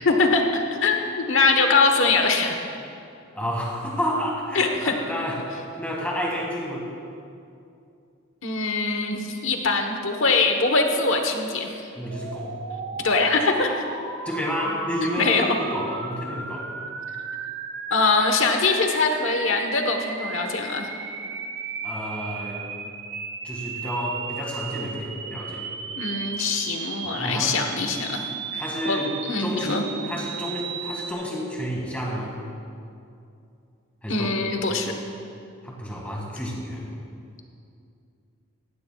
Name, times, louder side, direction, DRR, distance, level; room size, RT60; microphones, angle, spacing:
voice 1, 0.0-2.6 4.5-4.9 8.4-11.9 13.0-13.8 15.0-15.6 17.9-20.9 26.0-28.3 28.5-29.8 34.1-34.9, left 3 dB, 70° left, 4 dB, 1.2 m, -23 dB
voice 2, 3.3-6.8 12.0-12.5 12.9-13.2 14.3-16.7 21.8-22.6 23.4-25.7 27.0-27.6 28.6-29.1 29.4-32.3 34.0-34.3 35.6-36.8, equal, 5° left, -3 dB, 1.9 m, -30 dB
sound 1, 12.1-31.1, right 5 dB, 55° right, 0.8 m, -35 dB
15.5 x 15.5 x 2.4 m, 2.5 s
head